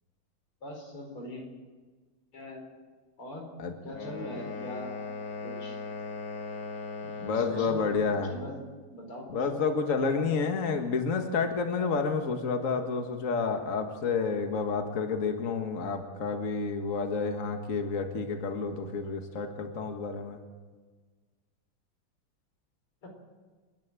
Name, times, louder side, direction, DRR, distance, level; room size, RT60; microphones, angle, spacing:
voice 1, 0.6-1.4 2.3-2.6 3.2-3.5 3.8-4.9 5.4-5.8 7.3-7.9 8.3-8.6 8.9-9.6 10.0-10.2 23.0-23.1, left 1 dB, 90° left, 1 dB, 5.4 m, -41 dB
sound 1, 3.9-7.8, left 4 dB, 65° left, 3.3 m, -38 dB
voice 2, 7.2-8.3 9.3-20.4, left 5 dB, 40° left, 5 dB, 1.8 m, -30 dB
29.0 x 10.5 x 9.0 m, 1.4 s
omnidirectional pair, 2.3 m